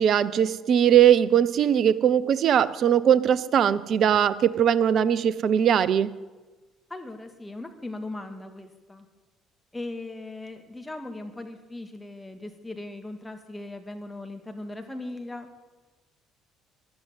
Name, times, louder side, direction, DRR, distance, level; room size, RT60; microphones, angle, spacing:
voice 1, 0.0-6.1, right 9 dB, 50° right, 17 dB, 0.7 m, -20 dB
voice 2, 6.9-9.1 9.7-15.5, left 2 dB, 10° left, 5 dB, 1.9 m, -38 dB
14.0 x 11.0 x 9.3 m, 1.2 s
figure-of-eight pair, 50°, 0 cm